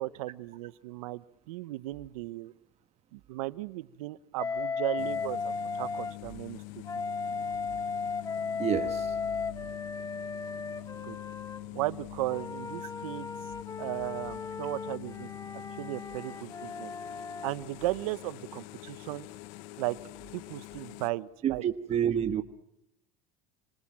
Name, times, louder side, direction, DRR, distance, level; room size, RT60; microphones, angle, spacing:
voice 1, 0.0-2.5 3.1-6.8 11.0-11.2 11.7-13.3 13.8-15.3 15.8-16.9 17.4-19.3 19.8-20.0 20.3-21.6, right 18 dB, 80° right, 16 dB, 1.0 m, -36 dB
Wind instrument woodwind instrument, 4.4-6.2 6.8-11.6 12.3-17.5, left 5 dB, 20° left, 1.5 m, -36 dB
sound 1, 5.0-21.1, left 20 dB, 70° left, 1.0 m, -45 dB
voice 2, 8.6-9.1 21.4-22.4, right 9 dB, 40° right, 7 dB, 1.4 m, -28 dB
27.5 x 25.0 x 7.5 m, 0.84 s
supercardioid pair, 105°, 18 cm